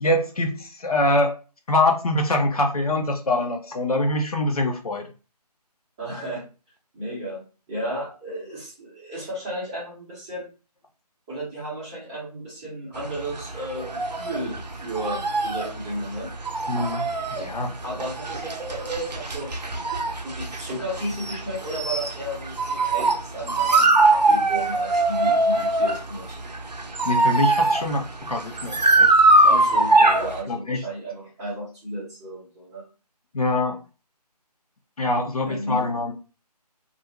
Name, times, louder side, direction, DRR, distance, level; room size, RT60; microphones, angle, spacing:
voice 1, 0.0-1.3 1.7-5.1 16.7-17.7 27.1-29.1 30.5-30.8 33.3-33.8 35.0-36.1, left 2 dB, 60° left, 3 dB, 0.6 m, -24 dB
voice 2, 6.0-6.4 6.9-10.4 11.3-16.3 17.8-19.5 20.2-26.4 29.4-32.9 35.5-35.8, right 1 dB, 5° right, -9 dB, 0.7 m, -33 dB
sound 1, 13.0-30.4, right 2 dB, 85° right, 0.6 m, -22 dB
2.5 x 2.3 x 2.9 m, 0.33 s
figure-of-eight pair, 160°, 21 cm